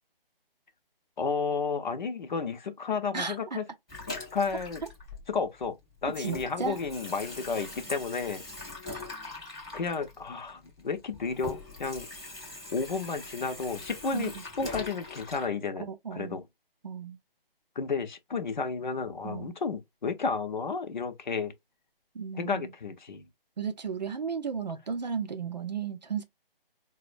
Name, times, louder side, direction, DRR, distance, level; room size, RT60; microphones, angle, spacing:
voice 1, 1.2-3.6 4.1-4.8 5.3-5.8 6.0-8.4 9.7-12.1 12.7-16.4 17.8-21.5 22.4-23.3, left 5 dB, 50° left, 0.6 m, -32 dB
voice 2, 3.1-3.6 6.2-6.8 8.8-9.1 14.1-14.3 15.8-16.4 16.8-17.2 19.2-19.5 22.1-22.7 23.6-26.2, right 6 dB, 45° right, 0.5 m, -34 dB
Water tap faucet / Sink (filling or washing), 3.9-5.7 6.0-15.5, left 3 dB, 5° left, 0.5 m, -42 dB
4.1 x 2.1 x 2.4 m
hypercardioid pair, 165°, 29 cm